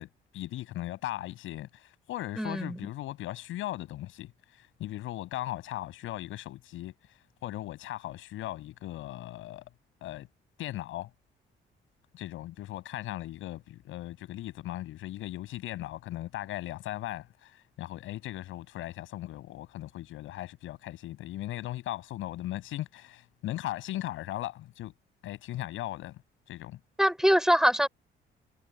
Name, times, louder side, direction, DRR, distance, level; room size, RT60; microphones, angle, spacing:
voice 1, 0.0-6.9 7.4-9.6 10.0-10.3 10.6-11.1 12.1-17.5 17.8-24.9 25.2-26.2 26.5-26.8, left 15 dB, 90° left, 7.9 m, -38 dB
voice 2, 2.4-2.8 27.0-27.9, equal, ahead, 6.6 m, -23 dB
cardioid pair, 90°, 20 cm